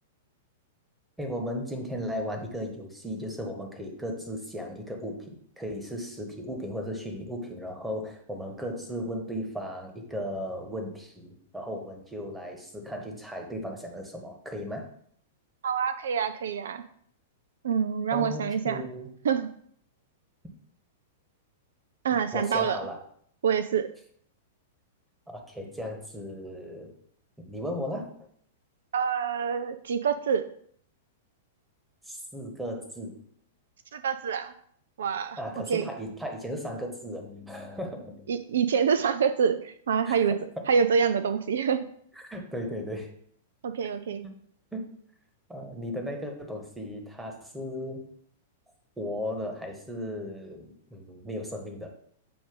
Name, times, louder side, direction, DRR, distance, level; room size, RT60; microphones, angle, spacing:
voice 1, 1.2-14.9 18.1-19.1 22.3-23.0 25.3-26.9 27.4-28.1 32.0-33.1 35.4-38.3 40.1-40.2 42.2-43.1 44.7-44.9 45.5-48.0 49.0-51.9, equal, 5° right, 2 dB, 1.3 m, -36 dB
voice 2, 15.6-16.8 17.6-18.8 19.2-19.5 22.0-22.9 23.4-23.9 28.9-30.5 33.9-34.5 35.0-35.4 35.7-35.9 38.3-40.4 40.7-41.9 43.6-44.3, right 7 dB, 65° right, 11 dB, 0.3 m, -26 dB
7.6 x 2.6 x 5.3 m, 0.64 s
figure-of-eight pair, 100°, 0 cm